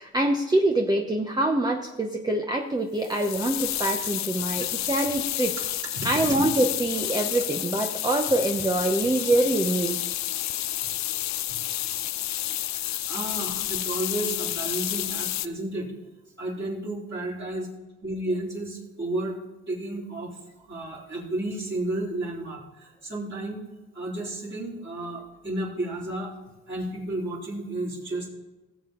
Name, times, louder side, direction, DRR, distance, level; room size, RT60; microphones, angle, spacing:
voice 1, 0.0-5.5 6.0-10.2, right 1 dB, 15° right, 2 dB, 0.8 m, -25 dB
sound 1, 3.0-15.5, left 13 dB, 65° left, 0.5 m, -30 dB
voice 2, 5.9-6.4 12.7-15.9 16.4-17.7 18.0-19.4 19.7-20.4 20.7-23.6 23.9-26.3 26.7-28.3, right 1 dB, 40° right, -7 dB, 3.7 m, -32 dB
17.0 x 7.6 x 3.8 m, 1.1 s
cardioid pair, 90°, 30 cm